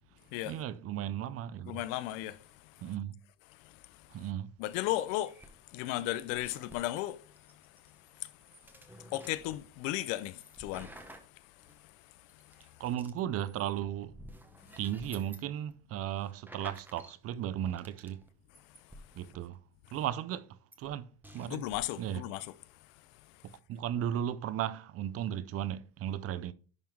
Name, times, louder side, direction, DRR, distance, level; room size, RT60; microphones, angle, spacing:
voice 1, 0.5-1.8 2.8-3.2 4.1-4.5 12.8-14.2 14.8-18.2 19.2-19.6 19.9-21.7 22.0-22.2 23.7-26.5, right 11 dB, 35° right, 0.4 m, -35 dB
voice 2, 1.7-2.4 2.6-2.7 3.6-4.1 4.6-5.4 5.7-7.2 8.2-8.3 9.1-10.9 21.5-22.5, left 15 dB, 70° left, 0.7 m, -35 dB
sound 1, 5.3-7.0 7.4-11.8 12.3-15.4 15.7-15.8 16.1-17.1 17.5-18.3 18.5-19.6 20.7-20.9 21.2-21.8, right 1 dB, 5° right, 0.7 m, -53 dB
10.5 x 3.6 x 4.5 m
cardioid pair, 140°, 49 cm